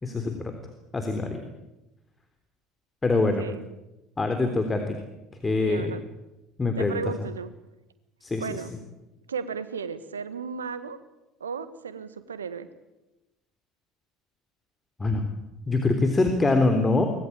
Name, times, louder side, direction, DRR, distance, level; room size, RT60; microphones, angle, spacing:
voice 1, 0.0-0.6 0.9-1.4 3.0-3.4 4.2-5.0 5.4-5.9 6.6-7.0 8.2-8.6 15.0-15.2 15.7-17.1, left 3 dB, 20° left, 5 dB, 3.5 m, -24 dB
voice 2, 3.1-3.6 5.6-6.0 6.8-7.5 8.4-8.7 9.3-11.0 11.4-12.7, right 5 dB, 80° right, 13 dB, 1.6 m, -35 dB
24.5 x 20.0 x 8.8 m, 0.98 s
figure-of-eight pair, 65°, 0 cm